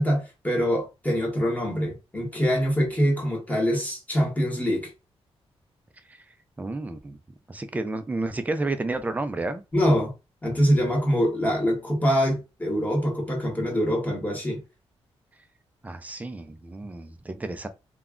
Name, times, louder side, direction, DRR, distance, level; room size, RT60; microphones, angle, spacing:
voice 1, 0.0-4.9 9.7-10.1 10.4-14.6, equal, 15° left, 1.1 m, -24 dB
voice 2, 6.6-7.2 7.5-9.6 15.8-17.7, right 2 dB, 15° right, 0.4 m, -31 dB
2.3 x 2.0 x 3.6 m
wide cardioid pair, 135°, 10 cm